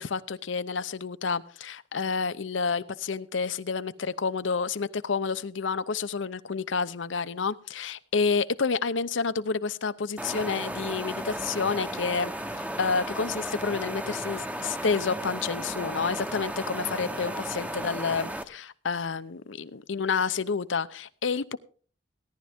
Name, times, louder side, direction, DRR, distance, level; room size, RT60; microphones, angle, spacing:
voice 1, 0.0-12.3 12.8-21.6, left 5 dB, 85° left, 14 dB, 0.7 m, -29 dB
sound 1, 10.2-18.4, right 1 dB, 5° right, 0.8 m, -34 dB
17.0 x 11.5 x 3.6 m, 0.41 s
head